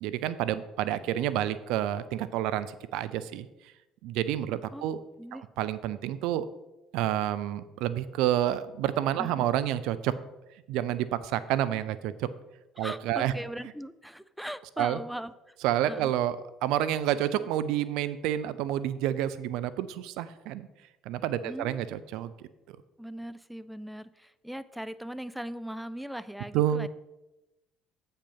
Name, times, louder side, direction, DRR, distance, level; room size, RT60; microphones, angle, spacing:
voice 1, 0.0-3.5 4.0-5.0 5.6-6.5 6.9-10.1 10.7-12.3 12.8-13.3 14.8-15.0 15.6-16.4 16.6-20.7 21.1-22.5 26.5-26.9, right 12 dB, 70° right, 15 dB, 0.5 m, -29 dB
voice 2, 4.5-4.9 5.2-5.5 9.2-9.5 12.8-15.6 15.9-16.1 21.4-21.8 23.0-26.9, equal, ahead, 15 dB, 0.5 m, -39 dB
8.3 x 5.5 x 5.7 m, 0.98 s
hypercardioid pair, 60°, 0 cm